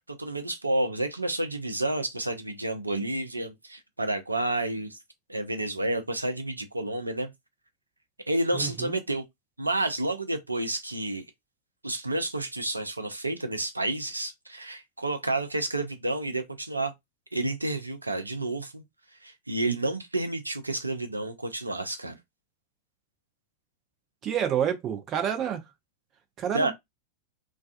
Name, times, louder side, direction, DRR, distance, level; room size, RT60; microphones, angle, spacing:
voice 1, 0.1-5.0 5.3-7.3 8.3-9.2 9.6-11.2 11.8-16.9 17.3-18.8 19.2-22.2 26.5-26.7, right 2 dB, 85° right, 0.4 m, -30 dB
voice 2, 8.5-9.0 24.2-25.6 26.4-26.7, right 9 dB, 30° right, 0.6 m, -28 dB
2.3 x 2.3 x 2.4 m
figure-of-eight pair, 90°, 0 cm